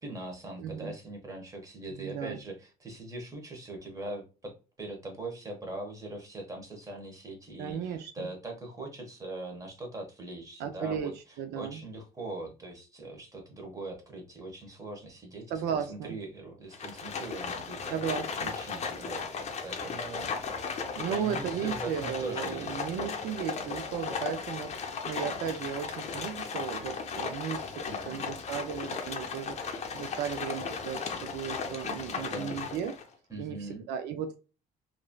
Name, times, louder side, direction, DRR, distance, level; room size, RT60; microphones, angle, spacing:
voice 1, 0.0-18.0 18.4-20.3 21.1-22.8 27.9-28.3 32.2-32.7 33.3-33.9, right 2 dB, 20° right, 2 dB, 1.1 m, -41 dB
voice 2, 0.6-0.9 1.9-2.4 7.6-8.3 10.6-11.8 15.5-16.1 17.9-18.5 20.9-32.9 33.4-34.4, right 8 dB, 80° right, 8 dB, 0.4 m, -35 dB
Livestock farm animals working animals, 16.7-33.1, left 5 dB, 40° left, 0.6 m, -36 dB
3.1 x 2.6 x 2.2 m, 0.33 s
cardioid pair, 110°, 17 cm